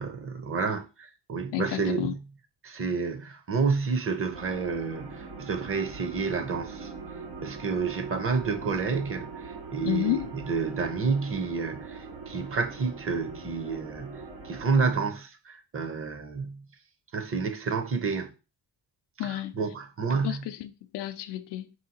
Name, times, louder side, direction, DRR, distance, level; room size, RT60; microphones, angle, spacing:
voice 1, 0.0-2.2 2.6-6.9 7.4-16.7 17.1-18.3 19.2-20.4, right 5 dB, 30° right, 0.7 m, -30 dB
voice 2, 1.5-2.1 9.8-10.3 19.2-19.6 20.1-21.7, left 14 dB, 80° left, 0.6 m, -31 dB
sound 1, 4.3-14.9, right 5 dB, 90° right, 1.4 m, -41 dB
5.2 x 2.8 x 2.9 m
cardioid pair, 90°, 41 cm